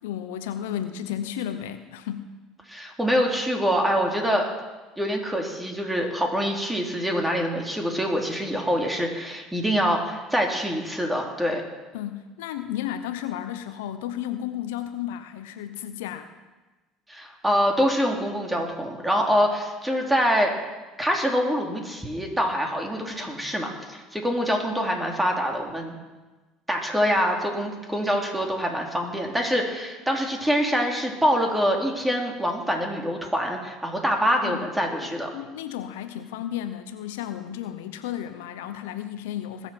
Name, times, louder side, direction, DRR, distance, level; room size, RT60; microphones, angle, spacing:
voice 1, 0.0-2.3 11.9-16.3 34.4-34.7 35.0-39.7, left 11 dB, 80° left, 10 dB, 0.8 m, -33 dB
voice 2, 2.7-4.5 5.0-11.6 17.1-20.5 21.0-25.9 26.7-35.3, equal, 10° right, 1 dB, 3.2 m, -25 dB
20.5 x 7.3 x 5.8 m, 1.2 s
hypercardioid pair, 75°, 0 cm